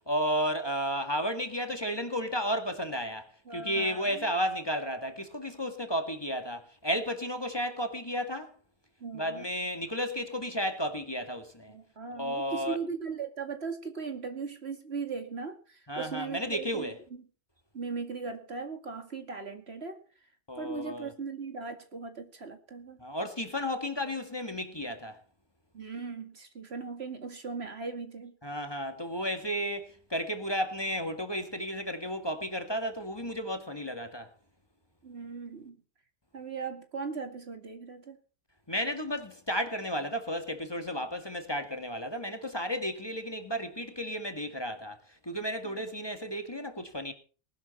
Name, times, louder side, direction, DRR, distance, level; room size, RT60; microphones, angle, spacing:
voice 1, 0.1-8.5 9.1-11.7 12.1-12.8 15.9-17.0 20.5-21.1 23.0-25.2 28.4-34.3 38.7-45.0 45.2-47.1, equal, 20° left, 2.0 m, -33 dB
voice 2, 3.5-4.3 9.0-9.5 11.7-17.2 17.7-20.0 20.6-23.0 25.7-28.4 35.0-35.8 36.3-38.2 45.6-45.8, right 5 dB, 65° right, 2.5 m, -38 dB
19.5 x 12.0 x 4.3 m
omnidirectional pair, 1.2 m